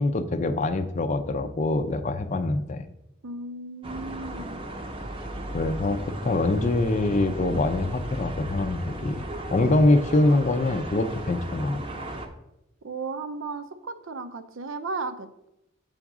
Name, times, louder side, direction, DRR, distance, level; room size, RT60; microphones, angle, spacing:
voice 1, 0.0-2.9 5.5-9.2 9.5-11.8, left 2 dB, 35° left, 8 dB, 0.5 m, -24 dB
voice 2, 3.2-4.6 5.9-6.0 6.7-6.8 12.8-15.5, right 3 dB, 75° right, 10 dB, 0.6 m, -35 dB
sound 1, 3.8-12.3, right 1 dB, 25° right, 0.7 m, -36 dB
7.9 x 3.5 x 6.1 m, 0.87 s
head